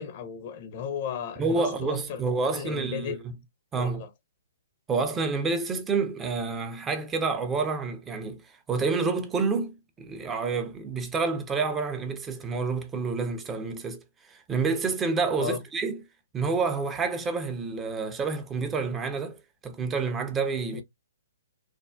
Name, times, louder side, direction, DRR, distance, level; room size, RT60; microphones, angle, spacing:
voice 1, 0.0-3.2 3.7-4.1 15.4-15.6 20.7-20.8, left 7 dB, 40° left, 0.6 m, -35 dB
voice 2, 1.4-3.2 3.7-4.0 4.9-14.0 14.3-16.0 16.3-20.8, right 4 dB, 15° right, 0.5 m, -28 dB
3.3 x 2.0 x 2.4 m
figure-of-eight pair, 125°, 0 cm